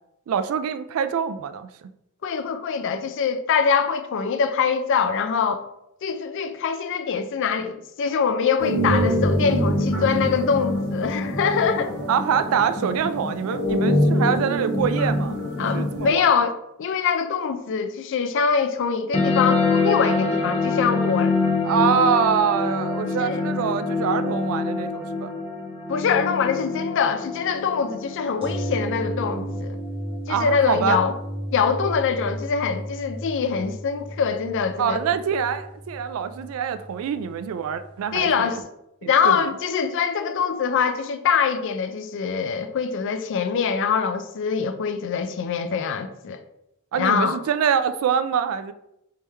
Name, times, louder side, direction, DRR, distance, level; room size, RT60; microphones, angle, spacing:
voice 1, 0.3-1.7 12.1-16.3 21.6-25.3 30.3-31.0 34.8-38.6 39.0-39.5 46.9-48.7, right 7 dB, 65° right, 0.3 m, -25 dB
voice 2, 2.2-5.6 6.0-11.9 15.6-21.3 23.2-23.4 25.9-29.8 30.3-31.1 31.5-35.0 38.1-38.6 39.0-46.4 46.9-47.4, left 6 dB, 55° left, 0.4 m, -24 dB
sound 1, 8.6-16.1, equal, 80° left, 1.3 m, -24 dB
sound 2, 19.1-30.1, left 3 dB, 30° left, 0.7 m, -25 dB
sound 3, 28.4-38.3 38.6-38.7, right 1 dB, 25° right, 1.0 m, -34 dB
3.5 x 3.1 x 4.3 m
head